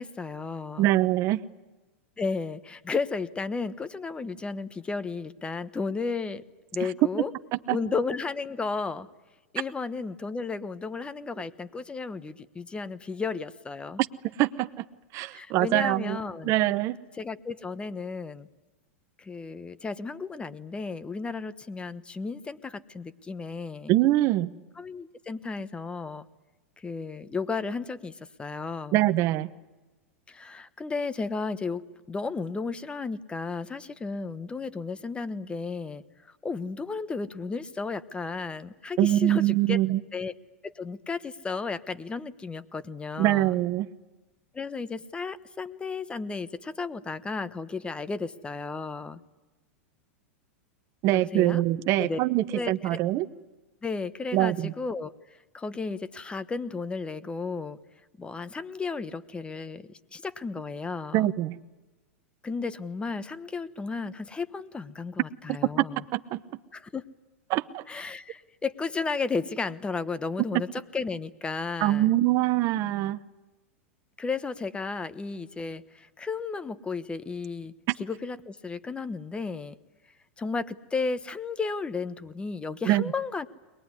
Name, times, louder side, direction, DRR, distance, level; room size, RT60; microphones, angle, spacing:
voice 1, 0.0-0.9 2.2-6.4 6.7-7.3 7.7-9.1 9.5-14.0 15.3-16.5 17.1-18.5 19.2-23.9 24.8-26.3 26.8-29.1 30.3-31.8 32.1-40.3 40.6-43.6 44.5-49.2 51.1-51.6 52.0-52.2 52.5-53.0 53.8-57.8 58.2-61.3 62.4-66.0 66.7-67.0 67.9-72.1 74.2-77.7 78.0-79.8 80.4-83.5, left 4 dB, 15° left, 14 dB, 1.2 m, -33 dB
voice 2, 0.8-1.4 7.7-7.8 14.4-14.8 15.1-17.0 23.9-24.5 28.9-29.5 39.0-40.0 43.2-43.9 51.0-53.3 54.3-54.7 61.1-61.6 66.1-66.4 67.5-67.8 71.8-73.2 82.9-83.0, right 15 dB, 45° right, 10 dB, 0.9 m, -24 dB
22.5 x 20.5 x 9.8 m, 1.2 s
hypercardioid pair, 115°, 7 cm